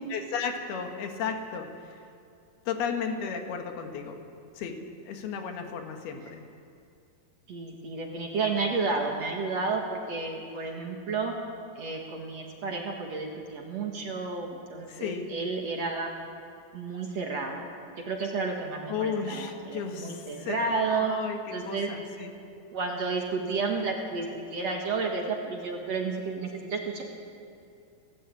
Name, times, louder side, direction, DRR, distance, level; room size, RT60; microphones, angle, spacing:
voice 1, 0.1-2.0 2.7-4.2 4.6-6.4 14.9-15.3 18.9-22.3, left 6 dB, 80° left, 4 dB, 3.6 m, -34 dB
voice 2, 7.5-11.3 11.8-16.1 16.7-17.6 18.1-21.2 21.5-22.0 22.7-27.0, right 4 dB, 50° right, 1 dB, 2.3 m, -31 dB
28.5 x 12.5 x 8.6 m, 2.5 s
omnidirectional pair, 4.4 m